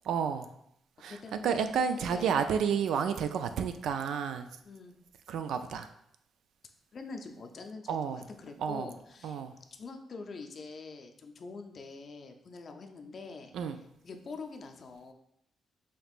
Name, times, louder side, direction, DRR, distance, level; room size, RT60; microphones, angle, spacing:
voice 1, 0.1-0.5 1.0-4.5 5.3-5.9 7.9-8.2 8.6-8.9 9.2-9.5 13.5-13.8, right 7 dB, 85° right, 9 dB, 0.3 m, -31 dB
voice 2, 1.1-2.5 4.6-5.0 6.9-9.4 9.7-13.5 14.0-15.1, left 4 dB, 45° left, 4 dB, 0.5 m, -45 dB
5.1 x 2.9 x 2.4 m, 0.74 s
cardioid pair, 115°, 0 cm